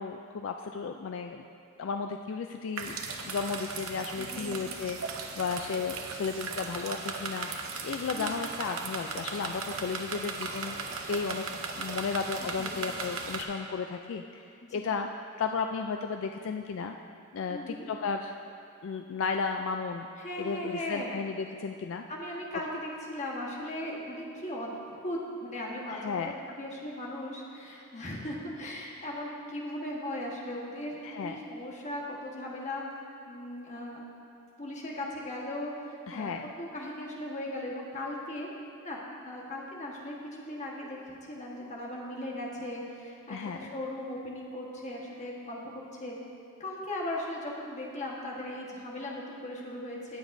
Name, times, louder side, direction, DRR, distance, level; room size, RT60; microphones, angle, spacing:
voice 1, 0.0-1.4 1.8-3.0 3.2-10.8 11.1-11.4 11.7-15.1 15.4-17.0 17.3-18.4 18.8-20.1 20.4-22.0 25.9-26.3 31.0-31.4 36.1-36.5 43.3-43.6, left 5 dB, 60° left, 5 dB, 0.3 m, -34 dB
sound 1, 2.8-13.4, right 4 dB, 70° right, 0.8 m, -37 dB
voice 2, 4.2-4.6 8.1-8.3 12.6-13.0 14.6-14.9 17.5-17.9 20.2-21.1 22.1-32.8 33.3-34.0 34.6-38.5 38.8-46.2 46.6-50.2, left 1 dB, 35° left, -3 dB, 1.3 m, -38 dB
18.5 x 7.1 x 2.6 m, 2.5 s
head